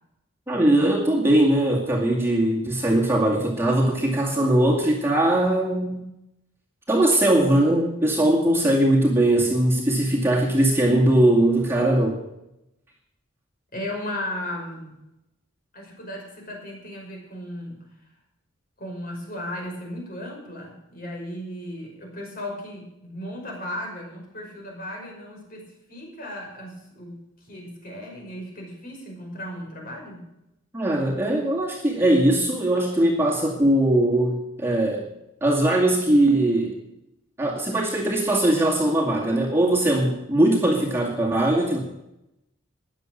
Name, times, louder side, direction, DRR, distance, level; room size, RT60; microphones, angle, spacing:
voice 1, 0.5-6.0 6.9-12.2 30.7-35.1 35.4-36.8 37.4-41.8, right 1 dB, 10° right, -3 dB, 2.2 m, -20 dB
voice 2, 13.7-14.9 15.7-17.9 18.8-30.2, left 1 dB, 45° left, 0 dB, 5.4 m, -36 dB
14.0 x 10.0 x 6.5 m, 0.88 s
head